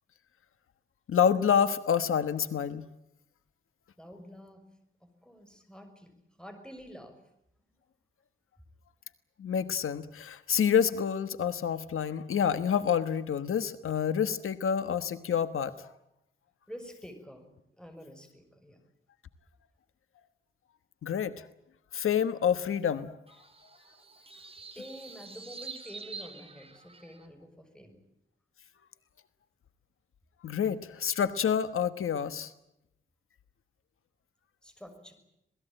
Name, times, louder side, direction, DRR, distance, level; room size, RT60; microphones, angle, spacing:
voice 1, 1.1-2.8 9.4-15.9 21.0-21.4 21.9-23.1 30.4-32.5, left 8 dB, 80° left, 12 dB, 1.3 m, -28 dB
voice 2, 4.0-4.7 5.0-7.2 7.6-7.8 16.7-17.5 17.8-18.8 24.7-28.0 34.6-35.1, equal, 5° left, 6 dB, 6.3 m, -48 dB
sound 1, 23.3-27.3, right 4 dB, 25° right, 3.6 m, -46 dB
27.0 x 19.0 x 9.0 m, 0.83 s
wide cardioid pair, 120°, 21 cm